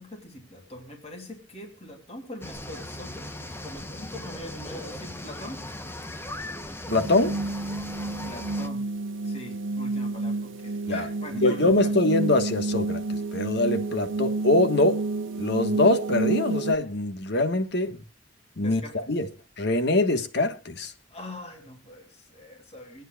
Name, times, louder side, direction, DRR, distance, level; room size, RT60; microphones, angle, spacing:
voice 1, 0.0-5.7 8.2-8.9 9.2-11.9 18.6-19.1 21.1-23.0, left 1 dB, 35° left, 2.8 m, -42 dB
sound 1, 2.4-8.7, left 1 dB, 15° left, 0.9 m, -38 dB
voice 2, 6.9-7.4 10.9-11.0 11.4-15.0 15.4-18.0 18.6-18.8 19.1-19.3 19.6-20.9, left 2 dB, 60° left, 1.5 m, -23 dB
sound 2, 6.9-16.7, right 3 dB, 80° right, 0.6 m, -30 dB
24.5 x 9.3 x 2.4 m
head